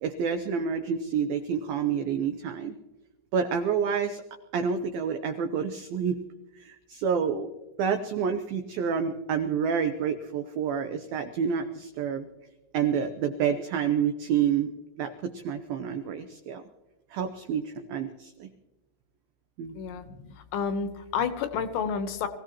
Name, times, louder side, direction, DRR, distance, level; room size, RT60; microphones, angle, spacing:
voice 1, 0.0-2.7 3.3-4.2 4.5-6.2 6.6-7.5 7.8-12.3 12.7-14.7 15.0-16.6 17.1-18.5 19.6-19.8, right 7 dB, 85° right, 6 dB, 2.0 m, -28 dB
voice 2, 19.8-22.3, left 6 dB, 75° left, 8 dB, 3.0 m, -30 dB
25.0 x 16.5 x 3.0 m, 1.0 s
omnidirectional pair, 5.4 m